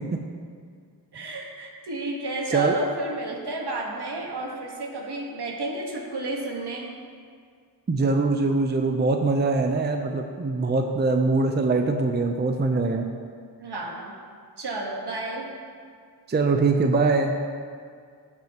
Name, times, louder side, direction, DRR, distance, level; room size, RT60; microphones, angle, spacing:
voice 1, 1.1-7.0 13.6-14.1 14.6-15.5, right 2 dB, 70° right, 0 dB, 1.4 m, -31 dB
voice 2, 7.9-13.1 16.3-17.3, right 3 dB, 25° right, 4 dB, 0.5 m, -23 dB
14.5 x 6.1 x 2.9 m, 2.1 s
wide cardioid pair, 65°, 42 cm